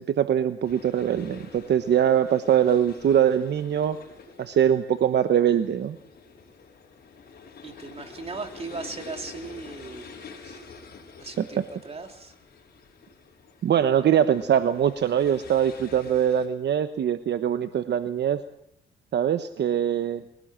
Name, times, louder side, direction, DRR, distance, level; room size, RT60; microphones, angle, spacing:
voice 1, 0.0-4.0 4.4-6.0 10.4-10.6 13.6-18.4 19.1-20.2, right 9 dB, 60° right, 10 dB, 1.1 m, -22 dB
sound 1, 0.6-16.5, left 4 dB, 50° left, 5.7 m, -47 dB
voice 2, 7.6-10.1 11.2-12.3, right 4 dB, 30° right, 5 dB, 3.3 m, -38 dB
22.5 x 17.5 x 7.6 m, 0.76 s
cardioid pair, 90°, 20 cm